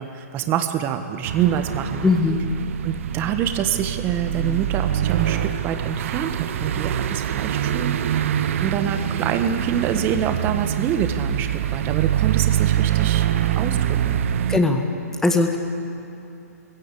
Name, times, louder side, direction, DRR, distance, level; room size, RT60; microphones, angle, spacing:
voice 1, 0.0-2.1 2.8-8.3 8.6-13.3 13.6-14.2, right 9 dB, 25° right, 8 dB, 1.3 m, -26 dB
sound 1, 1.2-14.6, right 10 dB, 50° right, 0.9 m, -24 dB
voice 2, 2.0-2.4 14.5-14.8 15.2-15.6, left 3 dB, 5° left, 4 dB, 1.5 m, -19 dB
20.0 x 16.0 x 8.5 m, 2.8 s
hypercardioid pair, 145°, 9 cm